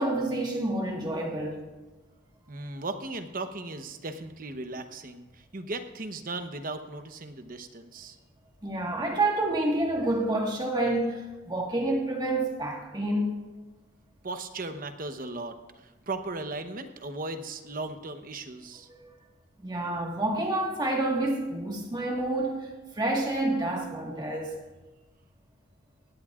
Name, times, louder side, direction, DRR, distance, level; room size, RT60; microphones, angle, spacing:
voice 1, 0.0-1.6 8.6-13.3 19.0-19.1 19.6-22.7 23.0-24.6, right 2 dB, 20° right, 0 dB, 1.6 m, -28 dB
voice 2, 2.5-8.2 14.2-18.9, right 2 dB, 45° right, 8 dB, 1.0 m, -37 dB
18.5 x 17.0 x 2.5 m, 1.1 s
head